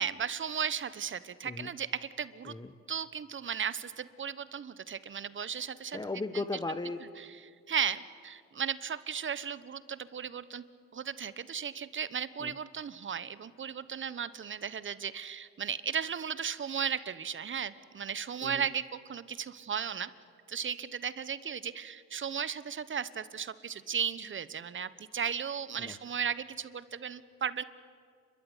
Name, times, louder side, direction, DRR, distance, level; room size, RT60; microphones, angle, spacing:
voice 1, 0.0-1.9 2.2-2.6 2.9-6.0 7.7-10.6 10.9-20.1 20.5-27.6, right 7 dB, 40° right, 16 dB, 1.0 m, -35 dB
voice 2, 5.9-7.0 12.4-12.5 18.4-18.7 25.8-26.0, left 3 dB, 15° left, 10 dB, 1.1 m, -36 dB
29.5 x 13.0 x 9.9 m, 2.2 s
cardioid pair, 90°, 30 cm